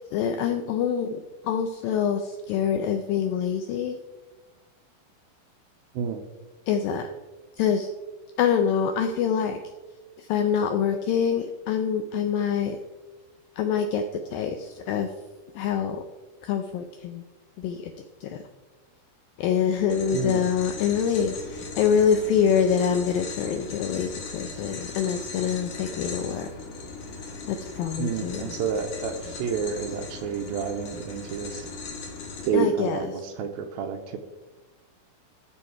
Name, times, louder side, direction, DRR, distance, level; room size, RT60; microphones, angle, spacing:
voice 1, 0.1-4.0 6.7-7.1 7.6-7.9 8.4-9.6 10.2-12.8 13.6-14.0 14.3-15.1 15.5-16.0 16.4-17.2 17.6-17.9 18.2-18.4 19.4-26.5 27.5-28.4 32.5-33.0, left 7 dB, 85° left, 7 dB, 2.0 m, -25 dB
voice 2, 5.9-6.3 20.1-20.5 28.0-31.7 32.4-34.2, right 7 dB, 80° right, 6 dB, 2.3 m, -29 dB
sound 1, 19.9-32.5, left 4 dB, 60° left, 3.1 m, -38 dB
14.0 x 6.4 x 4.6 m, 1.2 s
omnidirectional pair, 4.7 m